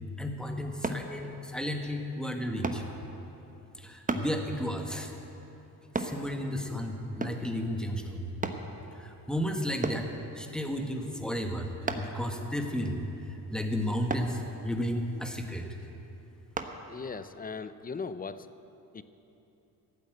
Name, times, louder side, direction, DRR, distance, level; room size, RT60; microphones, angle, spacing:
voice 1, 0.2-2.8 3.8-5.1 6.0-8.3 9.0-10.1 10.3-11.7 11.9-13.0 13.5-15.7, equal, ahead, 4 dB, 1.5 m, -33 dB
sound 1, 0.8-1.1 2.6-2.9 4.1-4.3 5.9-6.2 7.2-7.5 8.4-8.7 9.8-10.1 11.9-12.2 14.1-14.3 16.6-16.7 17.3-17.4, right 3 dB, 20° right, 1.0 m, -32 dB
voice 2, 16.9-18.5 18.9-19.0, left 4 dB, 25° left, 13 dB, 0.6 m, -38 dB
13.5 x 8.4 x 7.9 m, 3.0 s
supercardioid pair, 70°, 38 cm